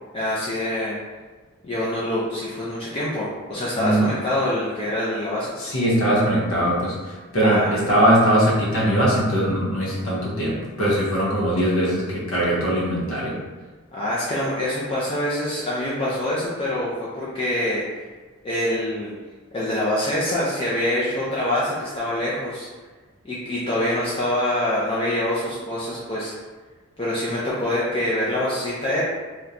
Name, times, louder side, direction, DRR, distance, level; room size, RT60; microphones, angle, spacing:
voice 1, 0.1-1.0 1.6-5.7 7.4-7.8 13.9-17.8 18.4-19.1 19.5-22.7 23.2-26.3 27.0-29.0, left 1 dB, 25° left, -8 dB, 0.4 m, -25 dB
voice 2, 3.7-4.1 5.6-6.9 7.3-13.3, right 1 dB, 70° left, -5 dB, 0.8 m, -21 dB
2.9 x 2.2 x 2.5 m, 1.3 s
head